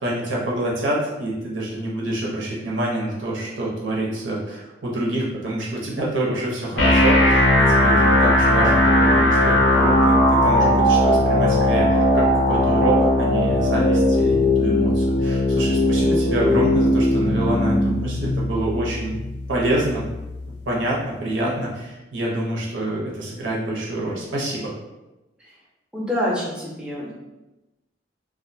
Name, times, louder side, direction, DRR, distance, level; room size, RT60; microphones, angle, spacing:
voice 1, 0.0-19.2 19.5-20.1 20.7-24.7, right 1 dB, 90° right, -4 dB, 0.7 m, -26 dB
sound 1, 6.8-20.7, left 1 dB, 75° left, 0.4 m, -18 dB
voice 2, 25.9-27.1, left 1 dB, 5° right, -5 dB, 0.5 m, -26 dB
2.4 x 2.1 x 2.6 m, 1.0 s
head